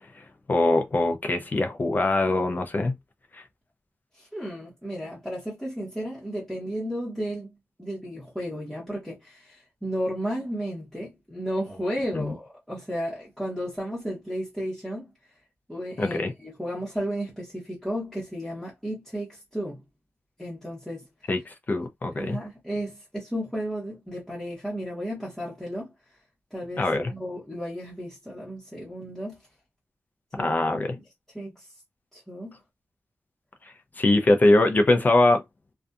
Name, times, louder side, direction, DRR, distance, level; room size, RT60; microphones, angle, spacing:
voice 1, 0.5-2.9 3.3-3.4 12.1-12.3 16.0-16.3 21.3-22.4 26.8-27.1 30.4-31.0 34.0-35.4, left 2 dB, 35° left, 0.4 m, -22 dB
voice 2, 4.2-7.5 7.8-15.1 15.7-19.8 20.4-21.0 22.1-25.9 26.5-29.4 30.4-31.0 31.3-31.7 32.1-32.6, equal, ahead, 1.0 m, -33 dB
2.6 x 2.3 x 2.3 m
wide cardioid pair, 115°, 5 cm